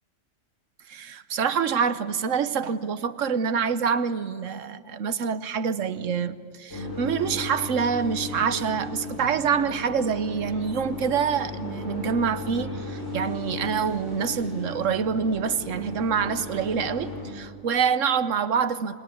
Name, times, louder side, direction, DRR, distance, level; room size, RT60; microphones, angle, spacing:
voice 1, 0.9-19.0, right 6 dB, 90° right, 1.3 m, -26 dB
sound 1, 6.7-17.2, left 2 dB, 75° left, 7.7 m, -36 dB
26.0 x 23.5 x 9.8 m
omnidirectional pair, 1.3 m